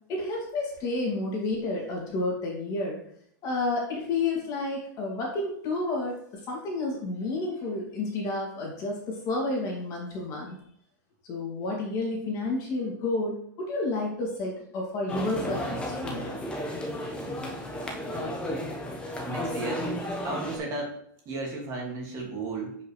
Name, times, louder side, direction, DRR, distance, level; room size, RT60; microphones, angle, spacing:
voice 1, 0.1-3.0 3.4-10.5 11.3-16.4, left 2 dB, 35° left, -1 dB, 2.3 m, -30 dB
sound 1, 15.1-20.6, left 1 dB, 10° left, 1.1 m, -33 dB
voice 2, 18.0-18.4 19.2-19.9 20.2-21.0 21.3-22.8, right 3 dB, 30° right, -1 dB, 2.0 m, -34 dB
7.4 x 5.5 x 3.2 m, 0.66 s
supercardioid pair, 145°, 11 cm